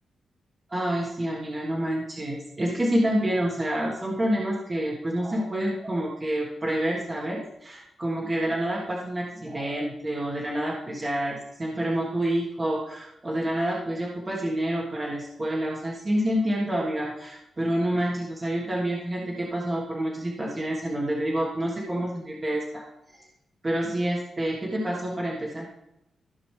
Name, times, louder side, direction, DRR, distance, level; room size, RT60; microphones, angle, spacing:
voice 1, 0.7-22.8 23.1-23.2 23.6-25.7, right 1 dB, 25° right, -4 dB, 1.5 m, -28 dB
15.0 x 6.0 x 3.3 m, 0.86 s
wide cardioid pair, 125°, 0 cm